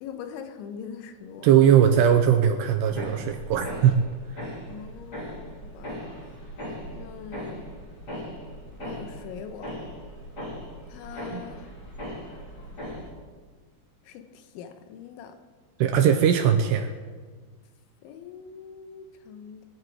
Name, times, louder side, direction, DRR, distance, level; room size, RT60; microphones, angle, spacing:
voice 1, 0.0-1.7 4.7-6.0 6.9-7.7 8.8-9.7 10.9-11.7 14.0-15.4 18.0-19.7, left 7 dB, 80° left, 7 dB, 3.3 m, -42 dB
voice 2, 1.4-3.9 11.3-11.4 15.8-16.9, right 9 dB, 80° right, 6 dB, 2.6 m, -20 dB
sound 1, 2.9-13.1, equal, 30° left, 2.5 m, -39 dB
21.5 x 10.5 x 4.7 m, 1.5 s
omnidirectional pair, 5.4 m